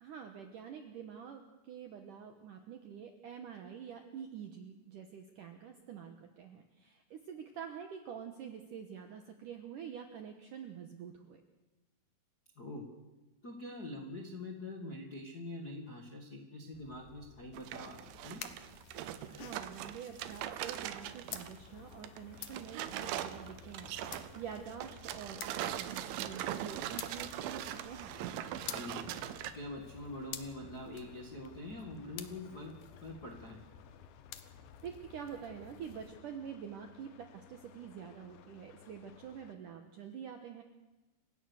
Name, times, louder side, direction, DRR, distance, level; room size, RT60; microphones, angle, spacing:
voice 1, 0.0-11.4 19.3-28.1 34.8-40.6, right 8 dB, 70° right, 6 dB, 2.0 m, -47 dB
voice 2, 13.4-18.4 28.6-29.1 29.4-32.7 33.0-33.6, left 2 dB, 45° left, 1 dB, 1.3 m, -44 dB
sound 1, 16.7-36.2, left 10 dB, 75° left, 1.9 m, -51 dB
sound 2, 17.5-21.6 21.9-29.5, right 12 dB, 90° right, 3.4 m, -41 dB
sound 3, 21.3-39.5, left 7 dB, 90° left, 3.6 m, -59 dB
29.0 x 16.5 x 6.4 m, 1.1 s
omnidirectional pair, 5.4 m